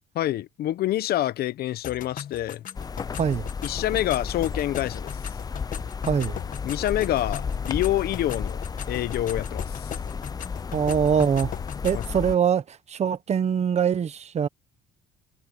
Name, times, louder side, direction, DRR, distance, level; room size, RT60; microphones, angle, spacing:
voice 1, 0.1-2.6 3.6-5.1 6.6-8.6 8.9-9.9 11.9-12.0, left 13 dB, 65° left, 1.0 m, -27 dB
sound 1, 1.8-12.2, left 10 dB, 50° left, 1.5 m, -39 dB
sound 2, 2.7-12.4, left 5 dB, 20° left, 0.5 m, -33 dB
voice 2, 3.2-3.5 6.1-6.4 10.7-11.5 11.8-14.5, right 7 dB, 40° right, 1.2 m, -23 dB
cardioid pair, 110°, 17 cm